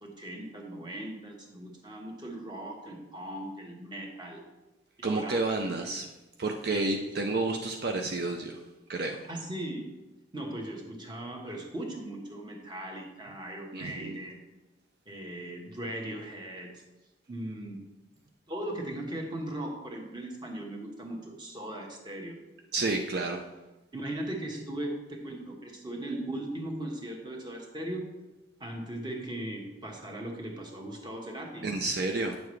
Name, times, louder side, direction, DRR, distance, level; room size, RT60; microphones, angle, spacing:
voice 1, 0.0-4.4 5.0-5.9 6.7-7.1 9.3-9.9 10.3-14.3 15.1-16.8 17.3-17.8 18.5-22.4 23.9-28.1 28.6-31.7 32.2-32.3, right 1 dB, 25° right, 1 dB, 1.3 m, -38 dB
voice 2, 5.0-6.1 6.4-8.6 8.9-9.2 13.7-14.2 22.7-23.4 31.6-32.4, right 3 dB, 60° right, 3 dB, 0.5 m, -30 dB
9.3 x 7.0 x 3.2 m, 1.1 s
head